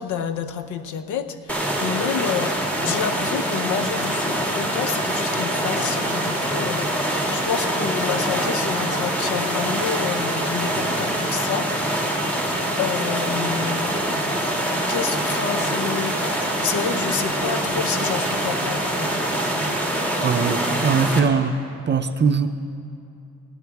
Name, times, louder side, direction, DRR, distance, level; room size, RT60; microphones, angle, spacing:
voice 1, 0.0-12.5 12.8-14.2 14.8-19.2, left 7 dB, 75° left, 11 dB, 0.9 m, -29 dB
sound 1, 1.5-21.2, right 1 dB, 5° left, 2.3 m, -24 dB
voice 2, 20.2-21.6 21.9-22.5, right 5 dB, 35° right, 8 dB, 0.7 m, -20 dB
19.0 x 15.0 x 3.5 m, 2.6 s
cardioid pair, 90°, 30 cm